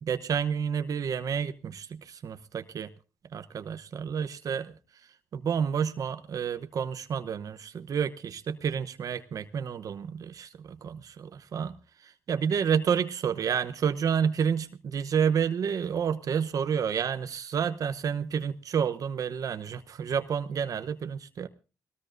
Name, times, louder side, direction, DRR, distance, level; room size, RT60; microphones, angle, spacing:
voice 1, 0.0-2.9 3.3-4.7 5.3-21.5, right 7 dB, 60° right, 10 dB, 0.9 m, -30 dB
21.0 x 18.5 x 2.6 m, 0.32 s
cardioid pair, 100°, 7 cm